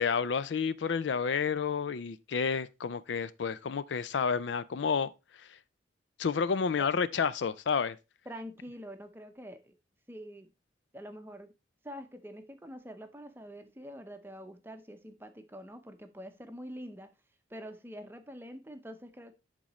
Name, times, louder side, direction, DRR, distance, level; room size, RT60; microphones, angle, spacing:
voice 1, 0.0-5.1 6.2-8.0, left 6 dB, 75° left, 0.4 m, -30 dB
voice 2, 8.3-9.7 10.1-10.5 10.9-11.5 11.8-17.1 17.5-19.3, equal, 10° right, 0.7 m, -45 dB
11.0 x 3.8 x 3.0 m
head